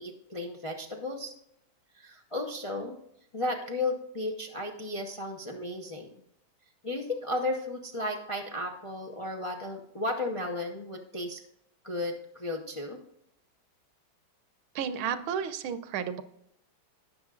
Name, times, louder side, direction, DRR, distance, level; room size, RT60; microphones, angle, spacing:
voice 1, 0.0-1.3 1.9-3.0 3.3-6.2 6.8-11.4 11.8-13.0, left 2 dB, 35° left, 1 dB, 0.5 m, -34 dB
voice 2, 14.7-16.2, right 8 dB, 85° right, 11 dB, 1.6 m, -32 dB
18.0 x 6.4 x 2.5 m, 0.76 s
omnidirectional pair, 2.2 m